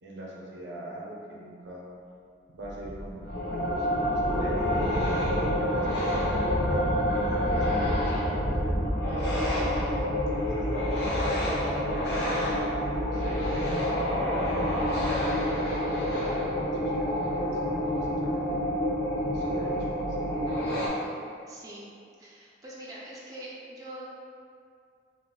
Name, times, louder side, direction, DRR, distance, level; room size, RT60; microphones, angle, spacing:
voice 1, 0.0-1.9 2.5-5.0 5.3-6.3 6.6-6.9 7.2-9.6 10.5-12.3 13.0-13.6 14.1-15.6 16.0-18.6 19.3-20.4, right 1 dB, 75° right, -4 dB, 0.6 m, -41 dB
sound 1, 2.6-20.5, equal, 80° left, 0.9 m, -34 dB
sound 2, 3.2-20.9, equal, 60° left, 0.6 m, -28 dB
voice 2, 21.5-21.9 22.2-24.0, right 1 dB, 20° right, -7 dB, 0.4 m, -43 dB
2.4 x 2.3 x 3.7 m, 2.3 s
head